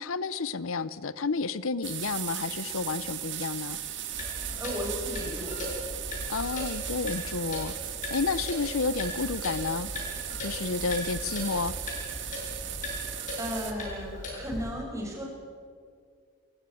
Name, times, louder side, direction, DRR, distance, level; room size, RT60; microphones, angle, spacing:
voice 1, 0.0-3.8 6.3-9.9 10.4-11.7, left 4 dB, 80° left, 17 dB, 0.7 m, -31 dB
sound 1, 1.8-13.7, right 11 dB, 60° right, 2.1 m, -37 dB
Clock, 4.1-14.7, left 1 dB, 40° left, 7.3 m, -38 dB
voice 2, 4.4-5.6 13.4-15.2, equal, 15° right, 0 dB, 5.6 m, -35 dB
27.5 x 15.5 x 8.4 m, 2.2 s
head